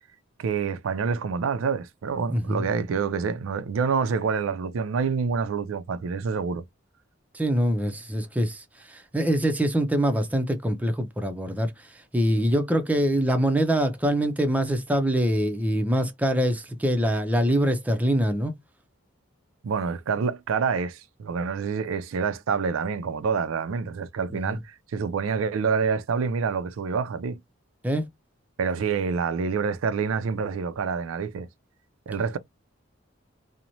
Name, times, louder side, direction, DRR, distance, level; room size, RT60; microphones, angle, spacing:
voice 1, 0.4-6.6 19.6-27.4 28.6-31.5 32.1-32.4, right 5 dB, 90° right, 0.4 m, -27 dB
voice 2, 2.3-2.6 7.3-11.9 12.1-18.6 24.3-24.4 27.8-28.1, equal, 10° right, 0.4 m, -24 dB
2.9 x 2.0 x 2.6 m
head